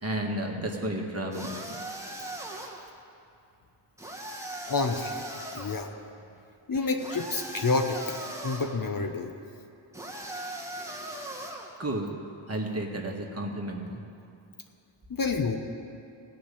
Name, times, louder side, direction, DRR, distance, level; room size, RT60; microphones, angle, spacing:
voice 1, 0.0-1.8 11.8-12.1 12.5-14.0, right 1 dB, 30° right, 1 dB, 1.9 m, -32 dB
sound 1, 1.3-2.9 4.0-5.8 7.0-8.8 9.9-11.8, right 1 dB, 5° right, 1.6 m, -39 dB
voice 2, 4.7-5.2 5.5-5.9 6.7-9.3 15.1-15.6, left 3 dB, 45° left, 5 dB, 1.0 m, -29 dB
16.0 x 5.5 x 8.5 m, 2.5 s
cardioid pair, 65°, 49 cm